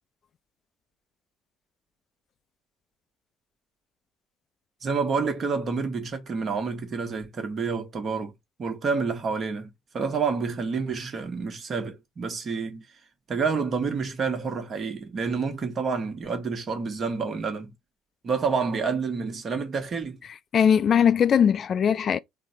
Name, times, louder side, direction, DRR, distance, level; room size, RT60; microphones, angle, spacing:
voice 1, 4.8-8.3 8.6-9.7 9.9-12.8 13.3-17.7 18.2-20.2, right 5 dB, 45° right, 1.2 m, -28 dB
voice 2, 20.5-22.2, left 8 dB, 50° left, 0.3 m, -20 dB
3.9 x 2.2 x 4.0 m
hypercardioid pair, 50°, 0 cm